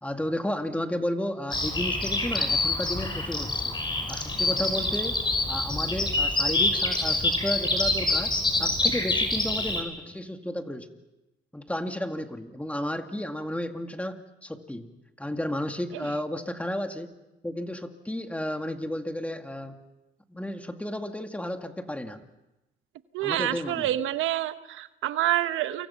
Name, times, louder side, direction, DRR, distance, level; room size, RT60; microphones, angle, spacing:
voice 1, 0.0-3.8 4.1-5.2 5.5-10.9 11.5-14.9 15.2-17.1 17.4-19.8 20.3-22.2 23.2-24.0, left 1 dB, 5° left, 6 dB, 2.2 m, -33 dB
Bird vocalization bird call bird song, 1.5-9.8, left 2 dB, 25° left, 5.7 m, -26 dB
voice 2, 23.1-25.9, right 13 dB, 90° right, 11 dB, 1.0 m, -27 dB
29.0 x 25.0 x 5.8 m, 1.0 s
cardioid pair, 90°, 20 cm